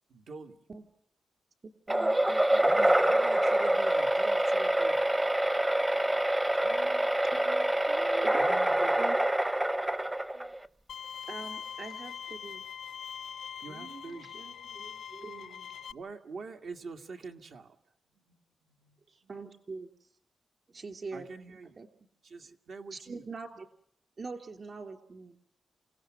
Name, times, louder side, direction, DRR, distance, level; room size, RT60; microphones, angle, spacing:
voice 1, 0.1-0.6 2.6-5.0 8.4-9.0 13.6-14.3 15.9-17.8 21.1-21.8 22.2-23.2, right 4 dB, 70° right, 4 dB, 1.9 m, -45 dB
voice 2, 1.6-2.7 7.3-7.4 8.2-8.4 9.0-9.2 11.3-12.6 15.4-15.5 19.3-19.9 20.7-21.3 21.8-21.9 22.9-23.7 24.2-25.4, right 4 dB, 45° right, 7 dB, 3.1 m, -43 dB
sound 1, 1.9-10.7, right 1 dB, 15° right, 0.8 m, -26 dB
voice 3, 6.5-8.5 10.3-10.5 13.7-16.0 18.1-19.3, right 5 dB, 85° right, 3 dB, 3.5 m, -51 dB
Bowed string instrument, 10.9-15.9, left 8 dB, 85° left, 0.8 m, -42 dB
28.5 x 17.5 x 6.2 m, 0.69 s
wide cardioid pair, 115°, 0 cm